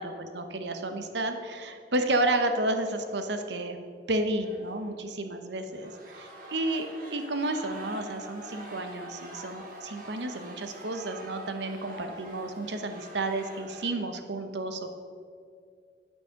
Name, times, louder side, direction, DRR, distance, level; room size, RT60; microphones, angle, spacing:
voice 1, 0.0-3.8 4.1-14.9, right 2 dB, 75° right, 7 dB, 1.0 m, -31 dB
sound 1, 1.7-1.9 2.1-2.2 2.9-3.3 4.4-4.9 5.5-13.9, right 1 dB, 50° right, 1.7 m, -46 dB
8.4 x 8.3 x 6.5 m, 2.3 s
head